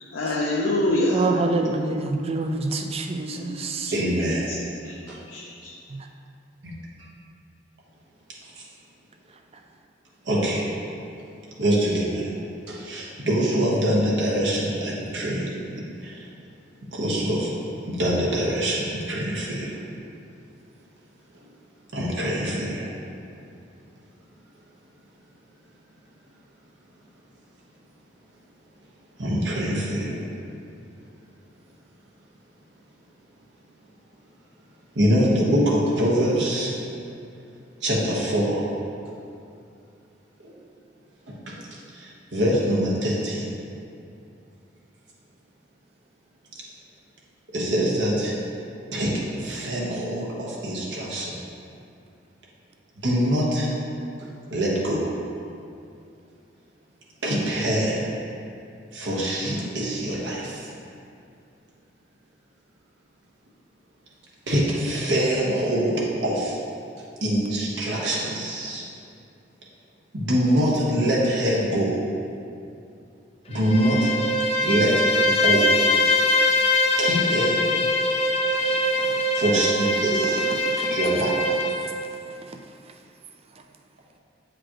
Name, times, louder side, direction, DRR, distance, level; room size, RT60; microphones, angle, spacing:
voice 1, 0.1-1.2 3.3-4.6 4.8-5.0 5.3-5.7, left 1 dB, 70° left, -4 dB, 0.7 m, -27 dB
voice 2, 1.1-3.9 78.6-79.3 80.6-81.2 81.8-81.9, right 3 dB, 35° right, 5 dB, 0.4 m, -27 dB
voice 3, 3.9-4.5 5.1-5.2 6.6-6.7 8.6-8.7 10.2-10.7 11.6-12.3 12.7-15.5 16.0-16.3 16.9-17.5 17.9-19.8 21.9-22.9 29.2-30.2 34.9-36.8 37.8-38.8 40.4-40.5 41.3-41.5 41.9-43.4 47.5-48.4 48.9-51.3 53.0-53.7 54.5-55.1 57.2-58.1 58.9-60.7 64.5-66.6 67.2-68.8 70.1-72.1 73.5-74.1 74.6-74.9 75.3-75.7 77.0-77.6 79.3-80.4 80.9-81.3, equal, 70° right, -4 dB, 1.1 m, -24 dB
Bowed string instrument, 73.5-81.8, left 1 dB, 35° left, 0.5 m, -22 dB
8.6 x 5.0 x 3.0 m, 2.5 s
head